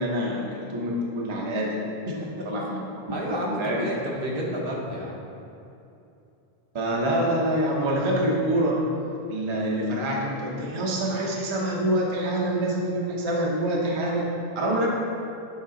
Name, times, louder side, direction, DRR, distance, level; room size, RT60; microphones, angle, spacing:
voice 1, 0.0-1.9 2.4-2.8 3.6-3.8 6.7-8.8 9.3-14.9, right 1 dB, 30° right, -2 dB, 0.7 m, -26 dB
voice 2, 2.7-5.2, equal, 65° right, -2 dB, 1.1 m, -31 dB
8.7 x 3.8 x 3.8 m, 2.7 s
omnidirectional pair, 1.0 m